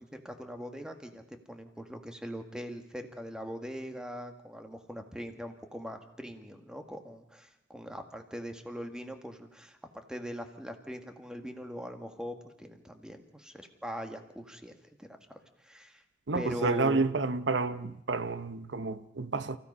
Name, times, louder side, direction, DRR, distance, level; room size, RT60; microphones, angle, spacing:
voice 1, 0.0-14.7 15.0-16.0 16.3-17.0, equal, 5° right, 1.7 m, -41 dB
voice 2, 16.3-19.6, right 3 dB, 75° right, 0.8 m, -30 dB
30.0 x 16.0 x 5.5 m
head